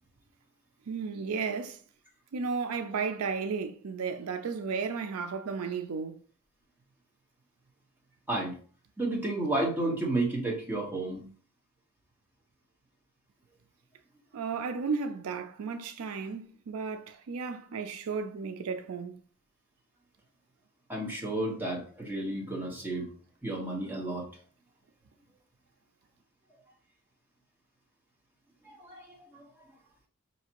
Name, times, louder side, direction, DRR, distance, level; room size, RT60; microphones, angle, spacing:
voice 1, 0.9-1.8 2.3-6.2 14.3-19.2, right 5 dB, 80° right, 0.4 m, -34 dB
voice 2, 9.0-11.2 20.9-23.1 23.4-24.2 28.6-29.4, right 2 dB, 10° right, 1.2 m, -32 dB
4.9 x 2.8 x 2.9 m
head